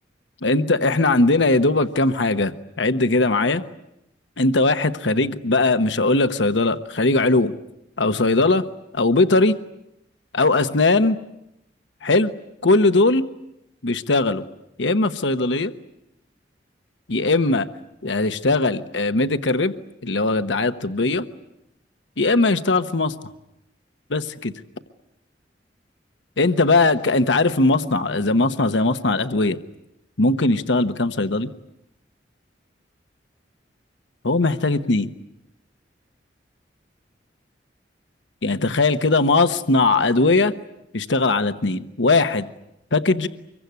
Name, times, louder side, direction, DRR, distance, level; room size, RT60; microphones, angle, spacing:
voice 1, 0.4-3.6 4.4-7.5 8.0-8.6 8.9-9.6 10.3-11.2 12.0-12.3 12.6-13.2 13.8-14.4 14.8-15.7 17.1-17.7 18.0-19.7 20.0-21.2 22.2-23.1 24.1-24.5 26.4-29.6 30.2-31.5 34.2-35.1 38.4-40.5 40.9-42.5 42.9-43.3, left 2 dB, 85° left, 9 dB, 1.1 m, -19 dB
25.5 x 23.0 x 9.5 m, 0.84 s
head